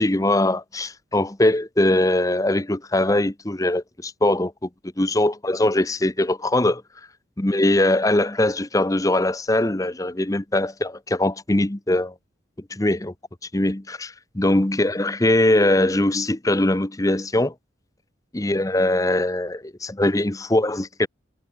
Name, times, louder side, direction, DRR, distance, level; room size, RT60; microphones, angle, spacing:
voice 1, 0.0-4.7 5.0-6.8 7.4-12.1 12.7-13.1 13.5-17.5 18.3-21.1, left 1 dB, 15° left, 0.8 m, -21 dB
head